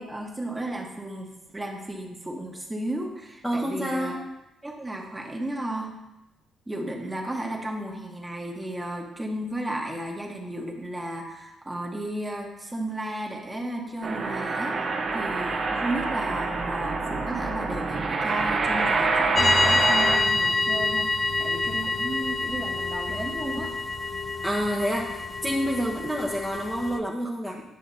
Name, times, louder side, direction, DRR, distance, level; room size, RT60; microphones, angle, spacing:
voice 1, 0.0-4.2 4.6-5.9 6.7-14.7 15.1-23.7, right 1 dB, 15° right, 1 dB, 1.2 m, -34 dB
voice 2, 3.4-4.1 24.4-27.6, equal, 5° left, -3 dB, 0.9 m, -28 dB
sound 1, 14.0-20.2, right 3 dB, 50° right, 1.0 m, -26 dB
sound 2, 19.3-27.0, left 3 dB, 35° left, 0.4 m, -27 dB
9.5 x 5.6 x 2.8 m, 0.94 s
cardioid pair, 90°, 0 cm